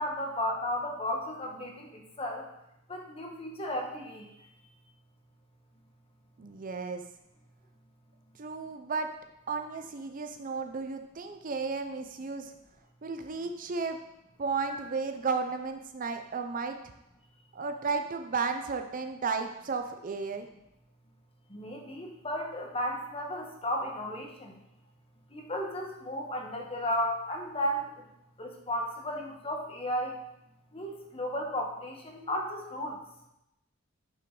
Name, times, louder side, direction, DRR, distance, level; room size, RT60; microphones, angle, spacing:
voice 1, 0.0-2.5 2.9-4.3 14.7-14.8 21.5-24.6 25.3-27.9 28.4-30.2 30.7-33.0, equal, 30° left, 2 dB, 1.2 m, -34 dB
voice 2, 6.4-7.0 8.4-9.1 9.5-12.5 13.0-14.0 14.4-16.8 17.5-20.5, right 4 dB, 40° right, 6 dB, 0.6 m, -33 dB
10.0 x 5.6 x 3.9 m, 0.87 s
head